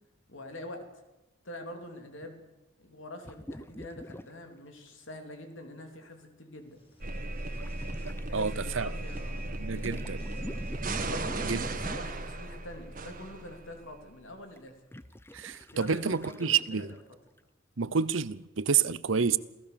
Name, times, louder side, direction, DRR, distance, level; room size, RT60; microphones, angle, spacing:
voice 1, 0.3-1.0 1.4-2.4 2.8-6.8 8.2-10.1 11.0-14.7 15.7-17.0, left 1 dB, 85° left, 3.5 m, -45 dB
sound 1, 3.2-4.3 4.6-4.7 7.6-8.2 9.7-12.3 14.6-17.0 17.4-17.5, left 1 dB, 10° left, 0.7 m, -44 dB
sound 2, 6.6-12.3, left 1 dB, 30° left, 5.2 m, -57 dB
sound 3, 7.0-13.8, right 2 dB, 45° right, 1.9 m, -36 dB
voice 2, 8.3-8.9 9.6-10.2 11.4-11.6 15.3-16.9 17.8-19.4, right 6 dB, 90° right, 0.8 m, -28 dB
28.0 x 16.5 x 7.0 m
head